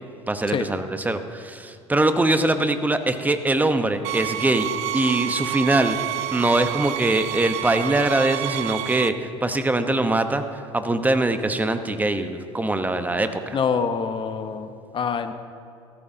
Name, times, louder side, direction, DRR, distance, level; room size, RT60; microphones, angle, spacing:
voice 1, 0.3-4.7 4.9-6.0 6.3-13.6, right 2 dB, 10° right, 9 dB, 1.0 m, -22 dB
sound 1, 4.0-9.1, right 14 dB, 65° right, 0.4 m, -29 dB
voice 2, 13.5-15.3, left 6 dB, 35° left, 9 dB, 1.0 m, -25 dB
16.5 x 13.5 x 2.8 m, 2.4 s
hypercardioid pair, 70°, 14 cm